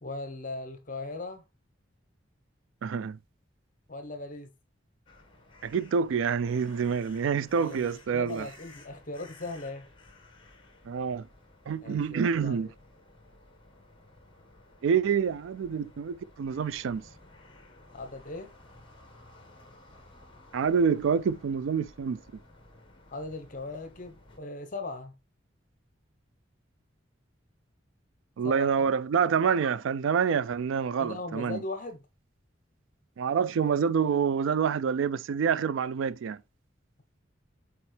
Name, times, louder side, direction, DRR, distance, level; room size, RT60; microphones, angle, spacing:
voice 1, 0.0-1.4 3.9-4.5 7.5-9.9 11.8-12.7 17.9-18.5 23.1-25.2 28.4-28.9 31.0-32.0, left 2 dB, 40° left, 1.0 m, -39 dB
voice 2, 2.8-3.2 5.6-8.5 10.9-11.3 11.7-12.7 14.8-17.0 20.5-22.2 28.4-31.6 33.2-36.4, right 6 dB, 80° right, 0.3 m, -27 dB
sound 1, 5.1-24.4, left 2 dB, 25° left, 1.4 m, -55 dB
7.0 x 4.3 x 3.2 m
head